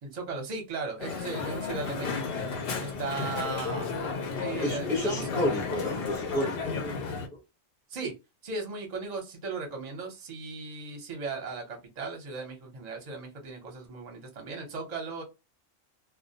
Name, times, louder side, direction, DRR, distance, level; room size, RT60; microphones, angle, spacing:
voice 1, 0.0-2.4 2.8-4.1 4.4-5.2 7.9-8.1 8.4-15.2, right 4 dB, 40° right, 0.7 m, -37 dB
Crowd, 1.0-7.3, left 4 dB, 60° left, 0.6 m, -33 dB
voice 2, 4.6-7.1, left 1 dB, 5° left, 0.6 m, -31 dB
2.2 x 2.1 x 2.6 m
omnidirectional pair, 1.4 m